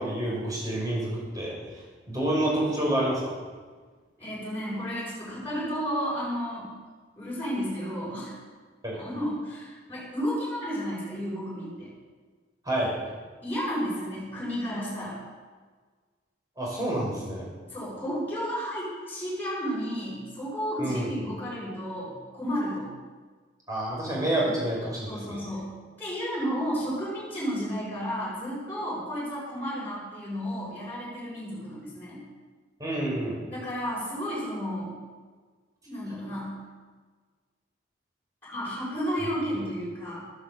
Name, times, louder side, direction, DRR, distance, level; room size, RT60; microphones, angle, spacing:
voice 1, 0.0-1.5 2.1-3.3 8.8-9.0 12.6-12.9 16.6-17.5 20.8-21.1 23.7-25.4 32.8-33.4, right 1 dB, 20° right, -4 dB, 6.1 m, -28 dB
voice 2, 4.2-6.7 7.2-8.4 8.9-11.9 13.4-15.2 17.7-22.9 25.1-25.7 26.0-32.2 33.5-34.9 35.8-36.6 38.4-40.2, equal, 10° left, -7 dB, 5.9 m, -32 dB
13.5 x 11.0 x 7.8 m, 1.4 s
head